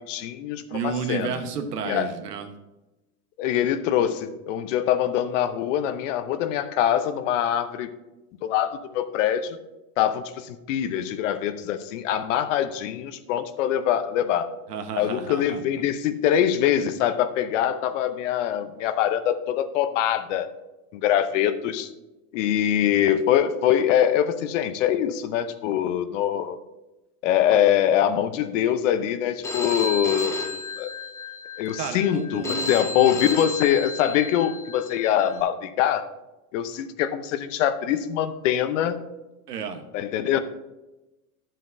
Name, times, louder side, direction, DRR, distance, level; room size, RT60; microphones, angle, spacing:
voice 1, 0.0-1.4 1.8-2.1 3.4-7.9 8.4-9.6 10.0-14.5 15.0-20.5 20.9-21.9 22.3-26.6 27.2-30.9 31.6-36.1 36.5-39.0 39.9-40.4, left 10 dB, 55° left, 11 dB, 0.8 m, -24 dB
voice 2, 0.7-2.5 14.7-15.6 31.8-33.4 35.2-35.4 39.5-39.9, right 6 dB, 90° right, 7 dB, 1.3 m, -32 dB
Telephone, 29.4-35.4, left 3 dB, 5° left, 0.4 m, -33 dB
11.5 x 7.5 x 2.7 m, 1.0 s
hypercardioid pair, 130°, 46 cm